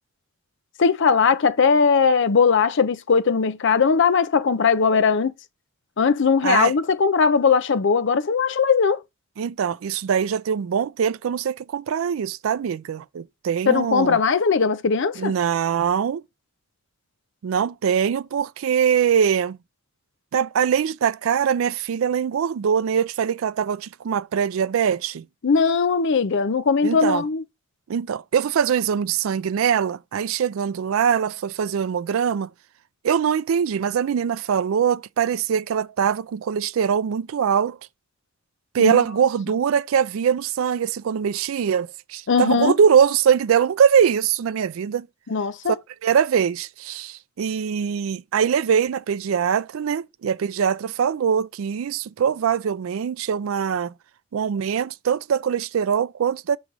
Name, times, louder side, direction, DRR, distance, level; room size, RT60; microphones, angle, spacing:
voice 1, 0.8-5.3 6.0-9.0 13.7-15.3 25.4-27.4 38.8-38.9 42.3-42.8 45.3-45.7, left 5 dB, 60° left, 0.5 m, -19 dB
voice 2, 9.4-14.2 15.2-16.2 17.4-19.6 20.3-25.3 26.8-27.2 27.9-32.5 33.0-37.8 38.7-45.1 46.0-53.9 54.3-56.6, right 7 dB, 75° right, 0.4 m, -22 dB
6.0 x 3.1 x 5.3 m
head